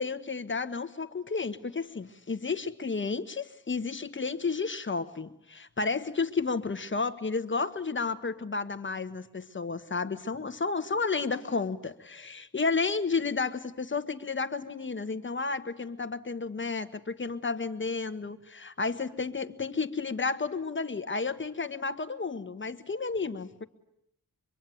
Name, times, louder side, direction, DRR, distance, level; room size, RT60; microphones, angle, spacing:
voice 1, 0.0-23.6, left 4 dB, 35° left, 10 dB, 1.3 m, -32 dB
24.5 x 24.5 x 9.3 m, 0.78 s
wide cardioid pair, 135°, 35 cm